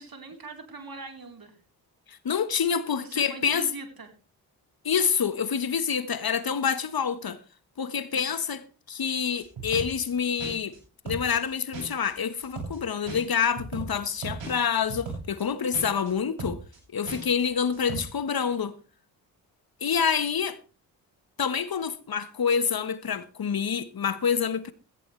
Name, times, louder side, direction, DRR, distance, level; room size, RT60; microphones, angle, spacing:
voice 1, 0.0-1.6 3.0-4.1 8.1-8.3, right 3 dB, 45° right, 4.0 m, -41 dB
voice 2, 2.1-3.7 4.8-7.4 7.8-8.6 8.9-10.7 11.0-16.6 16.9-18.7 19.8-20.6 21.4-24.7, left 7 dB, 45° left, 1.4 m, -27 dB
sound 1, 9.4-10.1 10.4-10.8 11.1-11.5 11.7-12.1 12.4-12.8 13.1-15.4 15.7-16.1 16.4-16.8 17.1-17.4 17.7-18.0, right 3 dB, 65° right, 7.2 m, -37 dB
16.5 x 14.5 x 3.3 m
hypercardioid pair, 40°, 48 cm